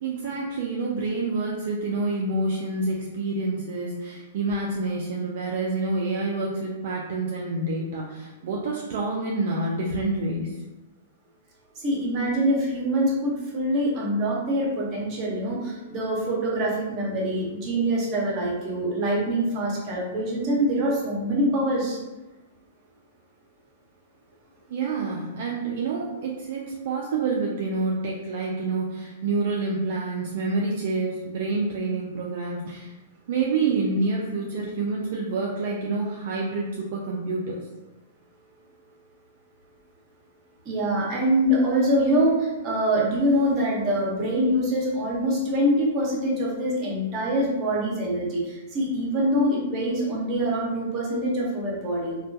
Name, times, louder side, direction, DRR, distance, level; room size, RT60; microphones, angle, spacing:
voice 1, 0.0-10.6 24.7-32.9 33.3-37.7, right 3 dB, 60° right, -2 dB, 0.3 m, -28 dB
voice 2, 11.8-22.0 40.6-52.2, equal, 35° right, -3 dB, 0.8 m, -24 dB
2.2 x 2.2 x 2.6 m, 1.1 s
hypercardioid pair, 120°, 0 cm